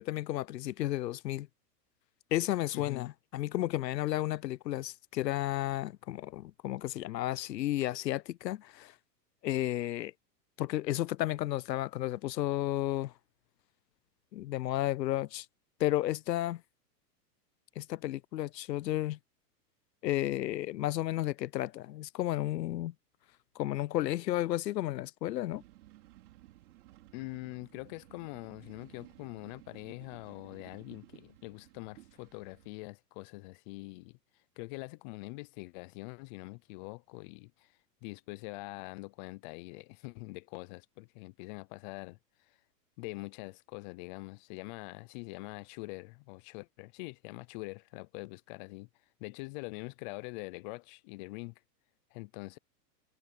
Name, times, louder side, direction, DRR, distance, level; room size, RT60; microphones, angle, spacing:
voice 1, 0.0-1.5 2.3-8.9 9.4-10.1 10.6-13.1 14.3-15.5 15.8-16.6 17.8-19.2 20.0-22.9 23.6-25.6, left 14 dB, 85° left, 0.7 m, -32 dB
voice 2, 2.7-3.1 27.1-34.2 34.6-42.2 42.5-42.6 43.0-48.9 49.2-51.5 52.1-52.6, left 26 dB, 30° left, 0.5 m, -44 dB
sound 1, 25.5-32.7, right 16 dB, 65° right, 5.3 m, -57 dB
hypercardioid pair, 130°, 49 cm